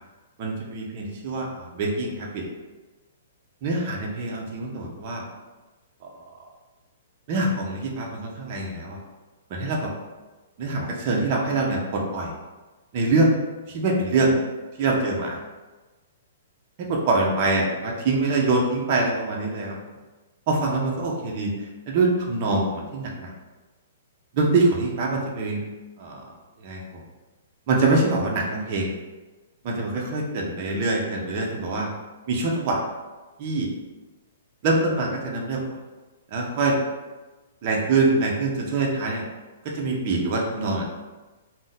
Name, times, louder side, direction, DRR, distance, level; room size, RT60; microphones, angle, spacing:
voice 1, 0.4-2.4 3.6-5.2 6.0-6.1 7.3-9.0 9.5-9.9 10.6-12.3 12.9-13.3 13.7-14.3 14.8-15.4 16.8-19.8 20.5-21.5 21.9-23.3 24.3-25.6 26.0-26.2 26.6-27.0 27.7-28.9 29.6-31.9 32.3-32.8 33.4-33.7 34.6-35.6 36.3-36.8 37.6-39.2 39.7-40.9, right 3 dB, 35° right, -2 dB, 0.5 m, -24 dB
2.5 x 2.1 x 3.9 m, 1.2 s
hypercardioid pair, 165°, 0 cm